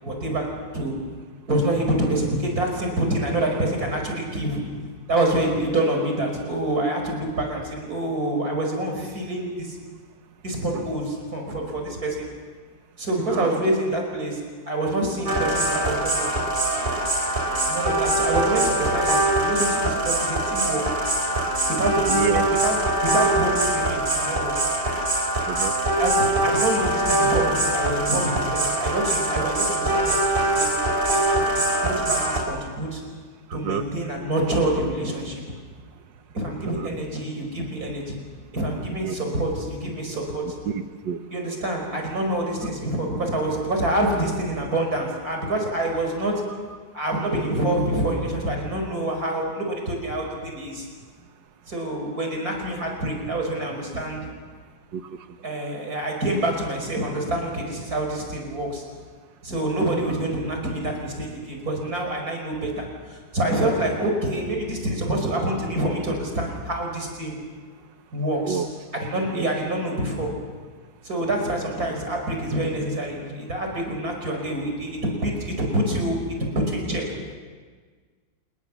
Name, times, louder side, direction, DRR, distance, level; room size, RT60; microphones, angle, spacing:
voice 1, 0.0-1.0 1.5-4.6 5.1-9.8 10.4-12.3 13.0-16.3 17.7-21.0 21.7-24.6 26.0-30.7 31.1-31.4 31.8-33.0 33.5-35.4 36.3-38.2 38.5-40.6 41.3-46.6 46.9-50.9 51.7-54.3 55.4-58.8 59.4-67.4 68.1-68.6 68.9-70.3 71.0-77.2, right 1 dB, 45° right, 2 dB, 5.7 m, -26 dB
sound 1, 15.3-32.4, right 1 dB, 25° right, 3.8 m, -23 dB
voice 2, 22.1-22.5 25.4-25.7 33.5-33.8 36.8-36.9 39.0-39.3 40.7-41.2 54.9-55.2 64.0-64.1 68.4-68.7 69.3-69.5, right 7 dB, 70° right, 9 dB, 1.9 m, -28 dB
27.5 x 20.5 x 7.4 m, 1.5 s
omnidirectional pair, 2.1 m